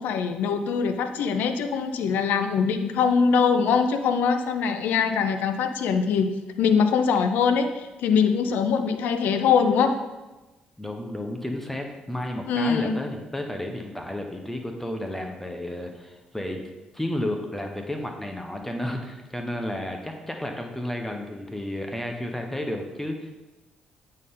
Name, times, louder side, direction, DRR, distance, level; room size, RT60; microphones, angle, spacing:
voice 1, 0.0-6.3 6.6-10.0 12.5-13.0, left 6 dB, 75° left, 8 dB, 0.6 m, -23 dB
voice 2, 10.8-16.6 16.9-23.3, left 1 dB, 10° left, 3 dB, 1.1 m, -32 dB
8.7 x 4.4 x 3.8 m, 1.1 s
supercardioid pair, 60°, 3 cm